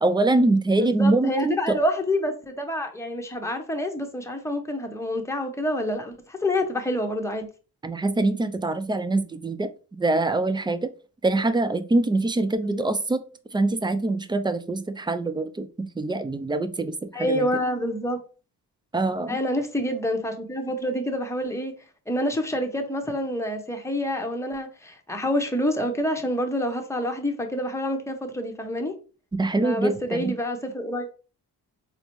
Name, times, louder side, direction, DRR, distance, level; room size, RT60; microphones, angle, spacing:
voice 1, 0.0-1.8 7.8-9.7 10.0-10.9 11.2-13.2 13.5-17.4 18.9-19.4 29.4-30.3, right 2 dB, 10° right, 0.3 m, -24 dB
voice 2, 0.8-7.5 12.6-12.8 17.1-18.2 19.3-21.8 22.1-28.9 29.6-31.1, left 1 dB, 5° left, 0.8 m, -27 dB
3.9 x 2.1 x 3.0 m
supercardioid pair, 50°, 45 cm